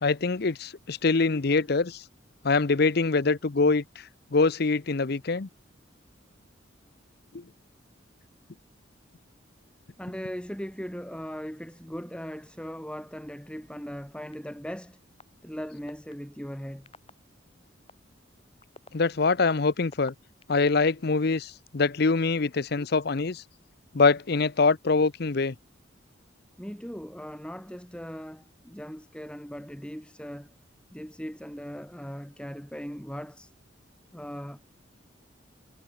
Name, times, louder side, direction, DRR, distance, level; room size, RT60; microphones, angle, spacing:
voice 1, 0.0-2.0 2.4-5.5 7.3-7.4 18.9-20.1 20.5-23.4 23.9-25.5, left 4 dB, 55° left, 0.7 m, -24 dB
voice 2, 10.0-15.0 15.4-16.9 26.6-30.5 30.9-33.5 34.1-34.6, equal, 5° left, 3.7 m, -39 dB
sound 1, 14.3-14.4 15.2-15.3 15.9-16.1 16.9-17.1 17.9-18.0 18.6-20.7 21.3-22.1, left 3 dB, 30° left, 4.1 m, -49 dB
head